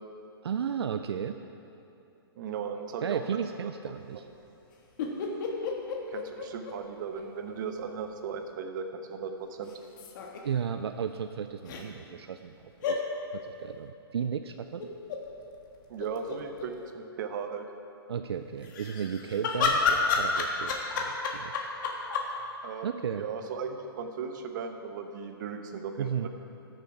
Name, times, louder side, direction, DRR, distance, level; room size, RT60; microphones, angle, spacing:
voice 1, 0.4-1.4 3.0-4.3 10.4-12.6 12.8-13.0 13.3-14.9 18.1-21.7 22.8-23.3 26.0-26.3, right 7 dB, 80° right, 8 dB, 0.4 m, -34 dB
voice 2, 2.4-3.2 3.6-3.7 6.1-9.7 15.9-17.7 22.6-22.9 23.2-26.3, right 6 dB, 50° right, 6 dB, 1.0 m, -37 dB
sound 1, 5.0-7.2 7.5-7.6 9.7-10.4 11.7-11.8 12.8-13.0 14.8-15.2 15.7-15.8 16.0-16.7 18.6-22.3, left 4 dB, 50° left, 1.4 m, -30 dB
13.0 x 6.7 x 4.8 m, 2.8 s
hypercardioid pair, 140°, 13 cm